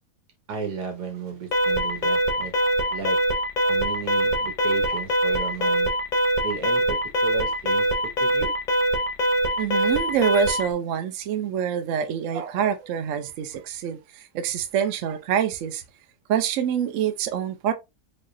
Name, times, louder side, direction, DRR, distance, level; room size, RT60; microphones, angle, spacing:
voice 1, 0.5-2.5 2.9-3.2 3.7-5.9 6.4-7.9 8.2-8.5, right 5 dB, 90° right, 1.7 m, -34 dB
Alarm, 1.5-10.7, equal, 40° left, 0.7 m, -23 dB
voice 2, 9.6-15.8 16.3-17.7, right 8 dB, 65° right, 0.8 m, -26 dB
3.6 x 3.2 x 2.5 m
omnidirectional pair, 1.7 m